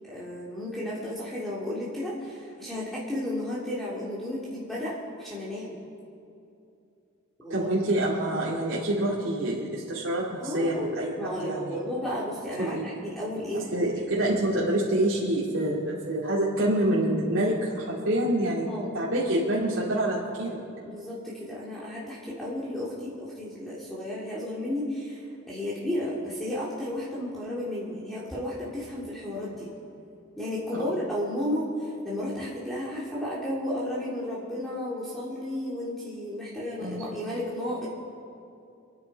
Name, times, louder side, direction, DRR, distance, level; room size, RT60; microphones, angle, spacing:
voice 1, 0.0-5.8 7.4-7.7 10.4-10.9 11.2-13.7 18.7-18.9 20.8-29.7 30.4-37.9, left 1 dB, ahead, -7 dB, 2.5 m, -33 dB
voice 2, 7.5-11.1 11.4-11.8 12.6-12.9 13.7-18.7 18.9-20.6 30.7-30.9 36.8-37.0, right 1 dB, 70° right, -7 dB, 2.7 m, -26 dB
28.0 x 9.5 x 4.7 m, 2.6 s
head